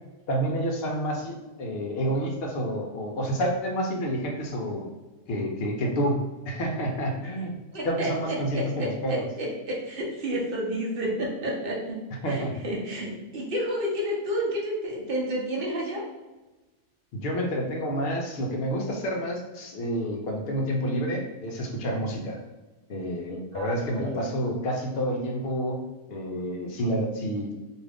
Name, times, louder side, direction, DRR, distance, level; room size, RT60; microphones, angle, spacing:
voice 1, 0.3-4.9 5.3-6.2 6.5-7.5 7.8-9.2 12.2-12.5 17.1-22.4 22.9-25.8 26.1-27.5, equal, 65° left, 1 dB, 0.6 m, -29 dB
voice 2, 7.7-12.0 12.3-16.0 23.5-24.2, equal, 50° right, -2 dB, 0.7 m, -30 dB
2.5 x 2.4 x 3.3 m, 1.1 s
omnidirectional pair, 1.5 m